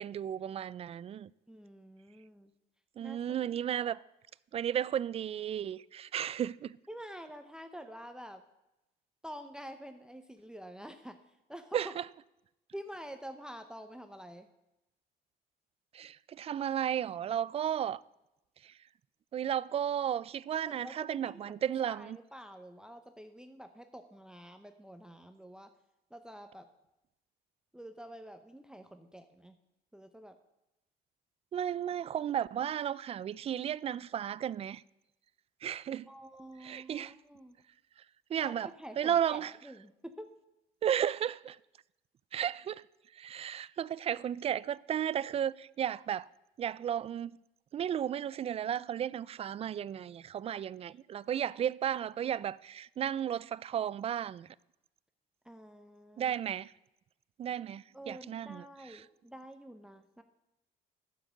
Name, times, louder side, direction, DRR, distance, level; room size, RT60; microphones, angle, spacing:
voice 1, 0.0-1.3 3.0-4.0 4.5-6.8 11.7-12.1 15.9-18.0 18.6-18.7 19.3-22.2 31.5-34.8 35.6-36.1 36.6-37.1 38.3-38.7 39.0-39.5 40.8-41.6 42.3-42.8 43.1-46.3 46.6-47.4 47.7-54.5 56.2-56.7 57.4-59.0, right 9 dB, 35° right, 0.3 m, -34 dB
voice 2, 1.5-2.5 3.0-3.4 3.9-4.0 6.9-8.4 9.2-11.2 11.5-11.9 12.7-14.5 20.6-25.7 26.1-26.7 27.7-29.6 29.9-30.4 36.1-37.6 38.4-40.3 55.4-56.4 57.9-60.2, equal, 5° right, 0.8 m, -48 dB
9.6 x 7.5 x 7.8 m
cardioid pair, 110°, 17 cm